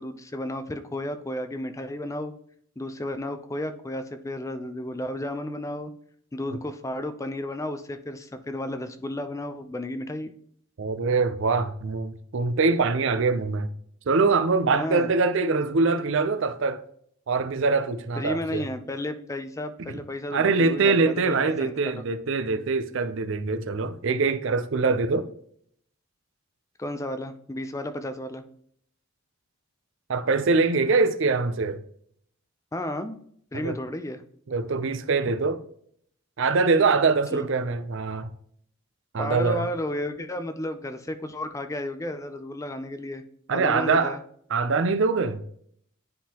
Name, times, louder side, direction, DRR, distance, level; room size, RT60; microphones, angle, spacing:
voice 1, 0.0-2.3 2.8-5.9 6.3-10.3 14.7-15.1 18.2-22.0 26.8-28.4 32.7-33.2 33.5-34.2 37.3-37.5 39.2-43.2 43.5-44.2, left 1 dB, 15° left, 0.4 m, -33 dB
voice 2, 10.8-13.7 14.1-16.8 17.3-18.7 19.9-20.0 20.3-25.3 30.1-31.8 33.6-33.8 34.5-35.6 36.4-38.3 39.1-39.7 43.5-44.2 44.5-45.4, right 4 dB, 60° right, 0.5 m, -23 dB
9.9 x 3.7 x 2.8 m
head